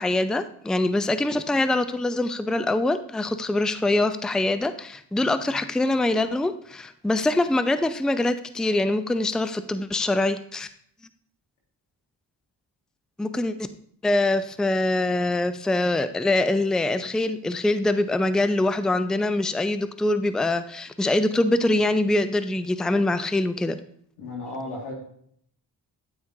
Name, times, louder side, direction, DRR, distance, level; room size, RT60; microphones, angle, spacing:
voice 1, 0.0-10.7 13.2-13.7 14.0-23.8, left 2 dB, ahead, 11 dB, 0.5 m, -24 dB
voice 2, 24.2-24.9, left 2 dB, 90° left, -2 dB, 2.2 m, -34 dB
9.2 x 8.9 x 2.7 m, 0.65 s
supercardioid pair, 40°, 48 cm